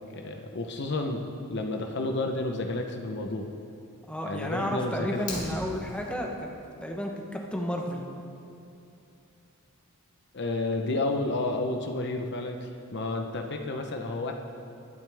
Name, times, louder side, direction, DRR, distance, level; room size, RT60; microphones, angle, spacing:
voice 1, 0.1-1.2 1.5-3.5 4.3-5.3 10.3-14.3, left 2 dB, 50° left, 4 dB, 0.9 m, -31 dB
voice 2, 4.1-6.5 6.8-8.0, equal, 5° left, 0 dB, 1.0 m, -32 dB
Fire, 5.1-6.1, left 2 dB, 90° left, 3.0 m, -38 dB
21.0 x 9.1 x 3.5 m, 2.7 s
head